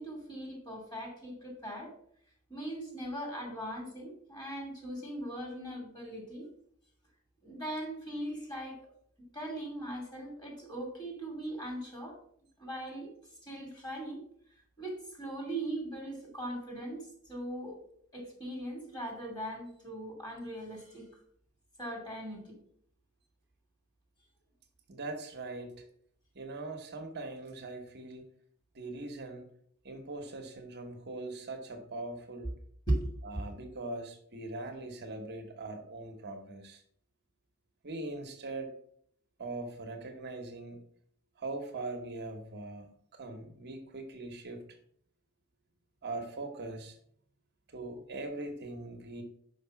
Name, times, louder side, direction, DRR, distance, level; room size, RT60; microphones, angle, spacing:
voice 1, 0.0-1.9 2.5-6.5 7.4-8.8 9.3-12.2 12.6-13.1 13.4-14.2 14.8-17.8 18.1-21.1 21.8-22.6 32.9-33.0 33.3-33.4, right 1 dB, 20° left, 0 dB, 2.5 m, -39 dB
voice 2, 24.9-25.8 26.3-28.3 28.7-29.5 29.8-32.5 33.2-36.8 37.8-38.7 39.4-40.8 41.4-42.9 43.1-44.7 46.0-47.0 47.7-49.2, right 2 dB, 50° right, 3 dB, 1.0 m, -41 dB
5.6 x 5.0 x 5.8 m, 0.65 s
head